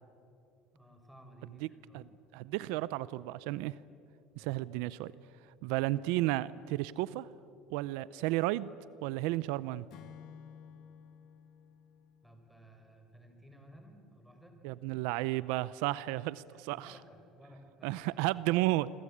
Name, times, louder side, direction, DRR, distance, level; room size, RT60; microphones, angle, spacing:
voice 1, 0.7-2.0 4.4-4.6 12.2-14.6 16.5-18.2, equal, ahead, 4 dB, 4.9 m, -56 dB
voice 2, 2.3-3.8 4.4-5.1 5.6-7.3 7.7-8.7 9.0-9.9 14.6-16.9 17.8-18.9, right 17 dB, 80° right, 18 dB, 0.6 m, -32 dB
Acoustic guitar / Strum, 9.9-13.3, left 8 dB, 60° left, 1.4 m, -54 dB
26.5 x 24.5 x 8.7 m, 2.6 s
cardioid pair, 130°, 0 cm